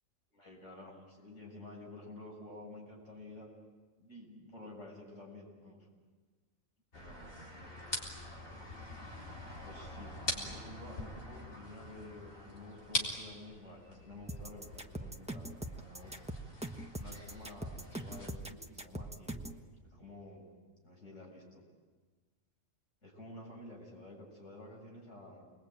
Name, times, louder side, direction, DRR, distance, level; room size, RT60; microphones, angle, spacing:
voice 1, 0.3-3.5 4.0-5.9 6.9-8.7 9.6-16.1 17.0-19.6 19.8-20.6 20.8-21.6 23.0-25.5, left 2 dB, 65° left, -1 dB, 7.8 m, -51 dB
sound 1, 6.9-18.3, left 1 dB, 85° left, 4.3 m, -43 dB
sound 2, 14.3-19.6, right 1 dB, 5° right, 1.2 m, -42 dB
29.0 x 22.0 x 9.0 m, 1.4 s
omnidirectional pair, 1.4 m